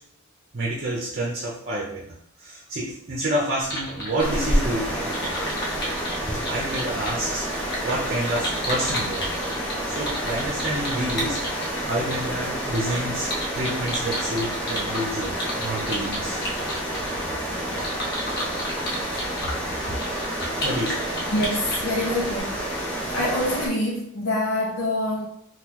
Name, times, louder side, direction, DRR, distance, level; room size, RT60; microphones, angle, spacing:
voice 1, 0.5-2.0 2.4-5.1 6.4-9.3 9.9-16.4 20.6-21.1, right 1 dB, 45° right, -3 dB, 0.6 m, -29 dB
sound 1, 3.6-22.4, equal, 50° left, 0.9 m, -34 dB
sound 2, 4.2-23.7, right 1 dB, 5° left, 0.8 m, -29 dB
voice 2, 21.3-22.7 23.0-25.3, left 1 dB, 75° left, -5 dB, 0.6 m, -26 dB
3.7 x 2.4 x 2.9 m, 0.69 s
head